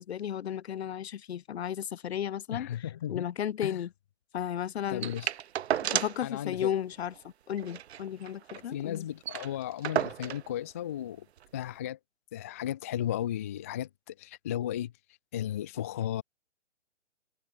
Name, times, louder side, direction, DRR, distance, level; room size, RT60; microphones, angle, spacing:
voice 1, 0.0-3.9 4.3-5.2 5.8-7.1 7.5-9.0, left 9 dB, 60° left, 0.8 m, -34 dB
voice 2, 2.5-3.3 3.6-3.8 4.9-5.3 6.2-6.7 8.7-11.3 11.5-12.0 12.3-14.9 15.3-16.2, left 11 dB, 15° left, 0.3 m, -35 dB
sound 1, 5.0-6.3 6.6-6.7 7.0-7.2 7.6-8.7 8.9-9.0 9.2-10.5 11.4-11.5, right 10 dB, 65° right, 0.7 m, -33 dB
figure-of-eight pair, 130°, 35 cm